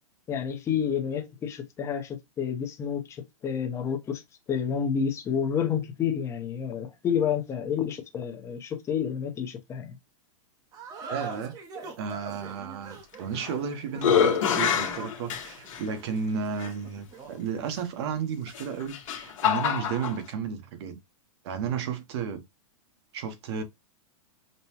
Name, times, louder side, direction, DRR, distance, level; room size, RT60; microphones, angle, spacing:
voice 1, 0.3-4.2 4.5-10.0, left 7 dB, 15° left, 0.7 m, -29 dB
sound 1, 10.7-17.4, right 4 dB, 20° right, 0.7 m, -42 dB
voice 2, 11.1-11.5 12.0-21.0 21.4-22.4 23.1-23.6, right 6 dB, 50° right, 0.9 m, -33 dB
sound 2, 13.1-13.6 14.0-15.8 16.6-16.7 18.5-20.2, left 8 dB, 70° left, 1.2 m, -26 dB
5.3 x 2.2 x 2.8 m
supercardioid pair, 155°, 18 cm